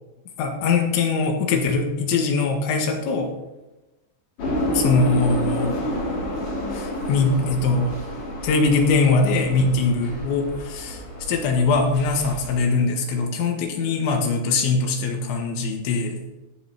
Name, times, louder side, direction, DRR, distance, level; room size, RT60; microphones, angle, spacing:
voice 1, 0.4-3.3 4.7-5.8 6.7-7.9 8.4-11.0 11.3-16.2, left 4 dB, 80° left, 3 dB, 3.8 m, -22 dB
sound 1, 4.4-12.5, equal, 35° left, 2.9 m, -29 dB
14.0 x 10.5 x 2.9 m, 1.0 s
omnidirectional pair, 5.3 m